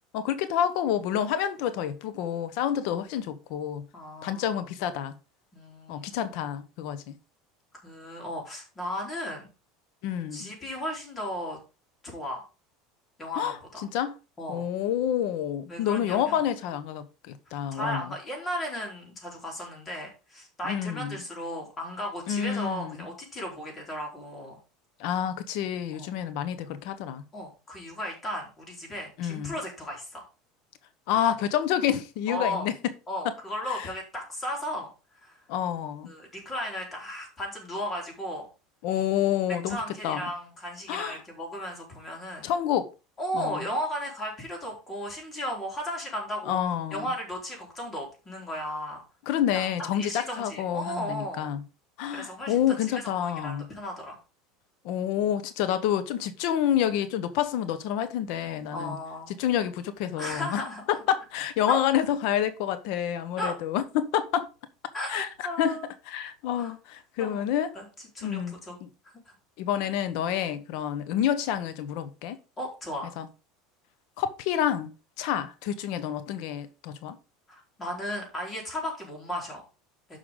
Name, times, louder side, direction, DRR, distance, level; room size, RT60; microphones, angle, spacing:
voice 1, 0.1-3.8 4.2-5.1 5.9-7.2 10.0-10.5 13.4-13.5 13.9-14.1 14.5-18.1 20.6-21.2 22.3-23.1 25.0-27.2 29.2-29.5 31.1-32.7 33.2-33.3 33.7-33.9 35.5-36.1 38.8-39.8 40.0-40.3 40.9-41.2 42.4-42.9 43.3-43.6 46.5-47.1 49.3-51.6 52.0-53.7 54.8-59.0 59.3-64.5 65.1-65.3 65.6-65.8 66.1-67.8 68.2-68.9 69.6-72.4 73.2-73.3 74.2-77.2, left 10 dB, 65° left, 1.1 m, -28 dB
voice 2, 3.9-4.6 5.5-6.3 7.8-9.5 10.3-11.6 12.0-12.4 13.2-13.9 14.4-14.7 15.7-16.4 17.7-24.6 25.9-26.1 27.3-30.3 32.3-32.7 33.1-34.9 35.2-35.3 36.1-38.5 39.7-42.5 43.2-46.6 46.9-49.0 49.5-51.5 52.1-52.6 52.9-54.2 58.7-59.3 60.2-60.8 61.7-61.8 63.4-63.5 64.9-65.9 66.5-66.7 67.2-67.4 67.7-67.9 68.1-68.7 69.3-69.4 72.6-73.1 77.5-79.6, equal, 20° left, 4.5 m, -35 dB
10.0 x 5.8 x 3.9 m
supercardioid pair, 140°, 0 cm